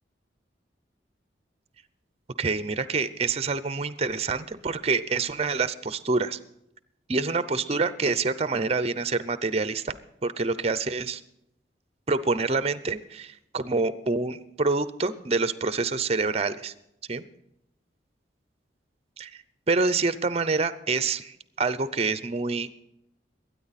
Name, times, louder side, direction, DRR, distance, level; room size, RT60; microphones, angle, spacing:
voice 1, 2.4-6.4 7.1-9.9 10.2-11.2 12.1-16.7 17.1-17.2 19.2-22.7, right 4 dB, 35° right, 14 dB, 0.6 m, -27 dB
22.0 x 9.5 x 4.2 m, 0.81 s
head